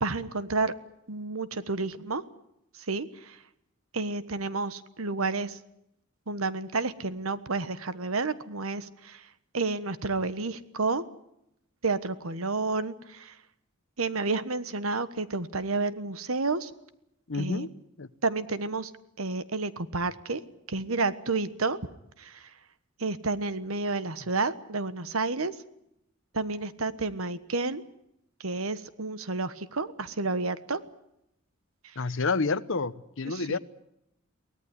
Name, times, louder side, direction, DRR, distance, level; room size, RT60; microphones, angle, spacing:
voice 1, 0.0-0.7 1.1-2.2 2.9-3.4 3.9-5.6 6.3-9.3 9.5-11.0 11.8-13.3 14.0-16.7 17.3-17.7 18.2-18.9 19.2-20.4 20.7-21.8 22.2-22.5 23.0-25.5 26.3-27.8 28.4-30.8 33.3-33.6, right 3 dB, 85° right, 1.3 m, -30 dB
voice 2, 17.3-17.7 18.0-18.1 32.0-33.6, left 3 dB, 65° left, 0.9 m, -29 dB
23.5 x 18.0 x 9.7 m
head